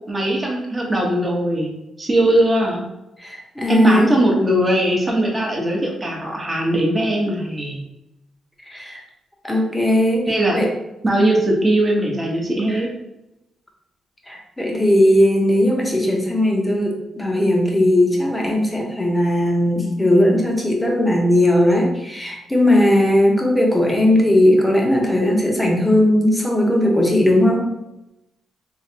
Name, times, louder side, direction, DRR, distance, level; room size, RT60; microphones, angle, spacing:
voice 1, 0.1-1.7 2.0-2.8 3.7-7.8 10.3-10.6 11.0-12.9, right 1 dB, 20° right, -2 dB, 1.0 m, -19 dB
voice 2, 3.2-4.1 8.6-9.0 9.4-10.7 12.7-12.8 14.3-27.6, left 1 dB, 5° left, 0 dB, 0.9 m, -17 dB
3.2 x 3.1 x 2.8 m, 0.92 s
cardioid pair, 95°, 0 cm